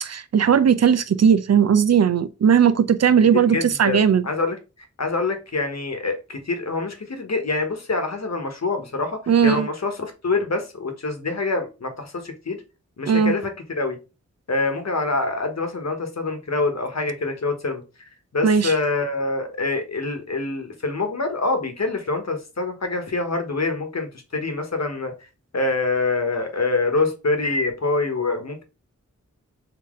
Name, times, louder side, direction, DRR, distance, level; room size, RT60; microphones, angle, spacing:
voice 1, 0.0-4.2 9.3-9.7 13.1-13.3 18.4-18.7, right 7 dB, 60° right, 0.5 m, -17 dB
voice 2, 3.3-4.6 5.0-12.6 13.0-14.0 14.5-17.8 18.3-25.1 25.5-28.6, left 3 dB, 65° left, 1.1 m, -25 dB
3.7 x 2.8 x 3.6 m
wide cardioid pair, 50°, 29 cm